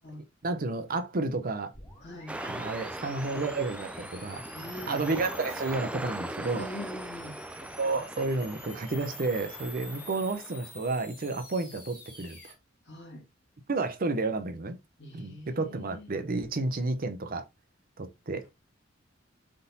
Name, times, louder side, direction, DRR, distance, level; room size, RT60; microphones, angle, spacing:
voice 1, 0.4-1.7 2.4-4.4 4.9-6.6 7.8-12.5 13.7-14.8 15.1-17.4 18.0-18.4, right 3 dB, 45° right, 0.7 m, -31 dB
sound 1, 1.7-12.5, left 2 dB, 10° left, 2.5 m, -48 dB
voice 2, 2.0-2.4 4.5-5.0 6.5-7.4 12.8-13.3 15.0-16.1, left 1 dB, 60° left, 1.9 m, -43 dB
sound 2, 2.3-10.7, right 1 dB, 5° right, 0.3 m, -40 dB
3.9 x 3.7 x 2.7 m
head